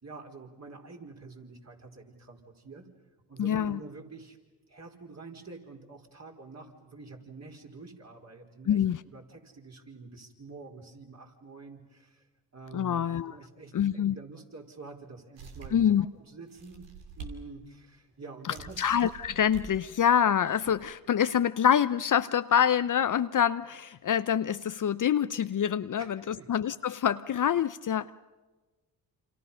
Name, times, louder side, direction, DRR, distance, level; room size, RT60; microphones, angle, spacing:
voice 1, 0.0-2.9 3.3-4.4 4.7-12.2 12.5-16.9 17.2-19.0 26.0-26.5, right 3 dB, 35° right, 1 dB, 4.7 m, -47 dB
voice 2, 3.4-3.8 8.7-9.0 12.7-13.3 13.7-14.2 15.7-16.1 18.8-28.1, left 9 dB, 45° left, 13 dB, 0.7 m, -26 dB
sound 1, 15.4-15.9 16.5-17.4 17.8-17.9 18.5-19.7 20.4-20.9, right 5 dB, 80° right, 3.3 m, -46 dB
28.5 x 26.5 x 5.7 m, 1.2 s
supercardioid pair, 55°, 44 cm